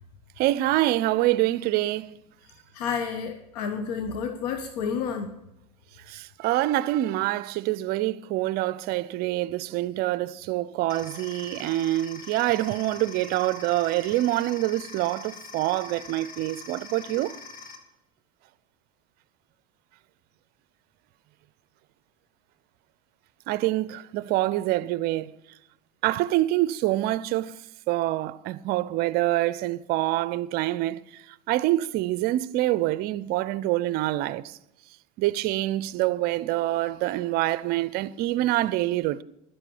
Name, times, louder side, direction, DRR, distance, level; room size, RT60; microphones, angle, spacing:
voice 1, 0.4-2.2 6.1-17.3 23.5-25.3 26.0-27.5 27.9-31.0 31.5-34.5 35.2-39.2, right 16 dB, 50° right, 0.6 m, -26 dB
voice 2, 2.7-5.3, left 6 dB, 75° left, 1.2 m, -30 dB
sound 1, 10.9-17.8, left 4 dB, 45° left, 2.1 m, -43 dB
11.5 x 7.9 x 7.1 m
supercardioid pair, 115°, 20 cm